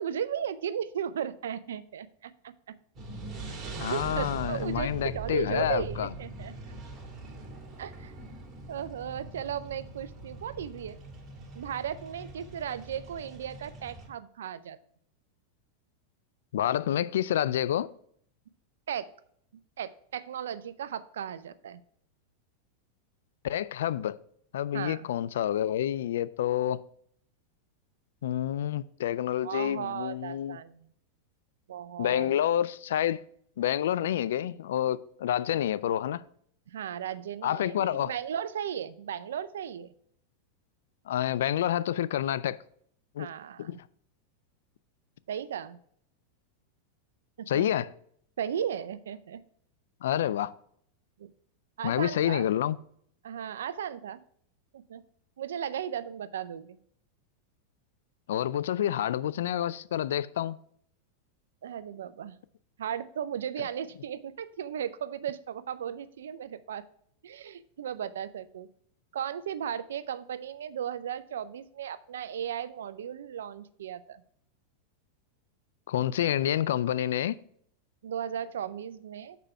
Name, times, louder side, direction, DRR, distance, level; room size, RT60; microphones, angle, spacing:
voice 1, 0.0-2.7 3.9-6.8 7.8-8.1 8.7-11.0 11.5-14.8 18.9-19.1 19.8-21.8 24.7-25.1 29.4-30.9 31.7-32.3 36.7-39.9 43.2-43.8 45.3-45.8 47.4-47.8 48.4-49.4 51.2-51.3 51.8-52.5 53.2-54.2 54.7-55.0 55.4-56.8 61.6-62.4 62.8-66.8 67.2-68.7 69.1-74.2 78.0-79.4, right 9 dB, 80° right, 0.5 m, -36 dB
sound 1, 2.9-14.1, right 3 dB, 30° right, 1.9 m, -41 dB
voice 2, 3.8-6.1 16.5-17.9 23.4-24.2 24.5-26.8 28.2-30.6 32.0-33.2 33.6-36.2 37.4-38.1 41.1-42.6 43.2-43.3 43.6-43.8 47.5-47.9 50.0-50.5 51.8-52.8 58.3-60.6 75.9-77.4, left 11 dB, 75° left, 0.3 m, -28 dB
6.7 x 5.0 x 4.4 m
hypercardioid pair, 110°, 0 cm